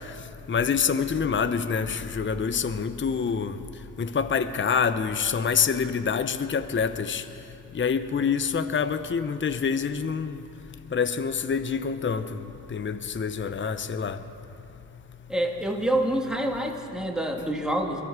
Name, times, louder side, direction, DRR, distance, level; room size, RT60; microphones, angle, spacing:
voice 1, 0.5-3.6 4.0-7.2 7.7-10.4 10.9-12.2 12.7-14.2, left 6 dB, 30° left, 0.7 m, -26 dB
voice 2, 15.3-18.0, right 1 dB, ahead, 1.9 m, -27 dB
22.5 x 12.5 x 4.7 m
cardioid pair, 60°, 39 cm